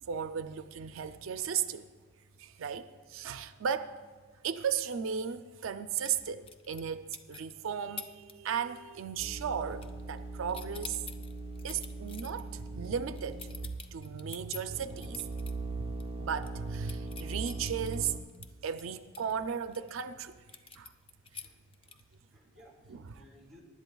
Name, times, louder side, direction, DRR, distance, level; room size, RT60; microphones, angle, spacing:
voice 1, 0.0-1.9 2.4-3.9 4.4-11.0 11.6-13.5 13.9-15.3 15.8-18.2 18.6-20.3 20.8-20.9 22.9-23.0, right 7 dB, 80° right, 10 dB, 0.4 m, -35 dB
Belt Buckle, 6.0-6.9 7.1-7.5 8.0-8.3 8.6-9.0 9.2-10.2 10.5-15.5 15.9-16.0 16.4-19.9 20.5-22.2, left 6 dB, 25° left, 0.6 m, -47 dB
sound 1, 9.2-14.0 14.6-18.2, right 2 dB, 30° right, 0.6 m, -41 dB
voice 2, 21.4-22.0 22.3-23.6, left 1 dB, ahead, -4 dB, 2.5 m, -59 dB
24.0 x 11.0 x 2.3 m, 1.4 s
head